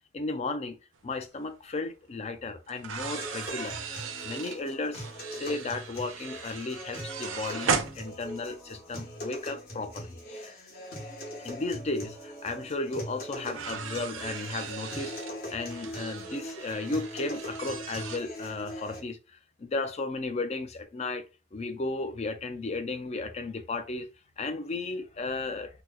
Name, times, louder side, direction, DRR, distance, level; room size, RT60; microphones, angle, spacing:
voice 1, 0.1-0.8 1.0-3.8 4.2-10.6 11.4-15.2 15.5-19.2 19.6-21.2 21.5-24.1 24.4-25.8, left 3 dB, 30° left, 0.4 m, -34 dB
sound 1, 1.4-1.5 2.7-8.7 10.0-10.1 11.8-11.9 12.2-12.3 13.5-18.2, right 6 dB, 65° right, 0.5 m, -37 dB
sound 2, 3.0-19.0, equal, 45° left, 1.1 m, -41 dB
2.9 x 2.0 x 3.6 m
head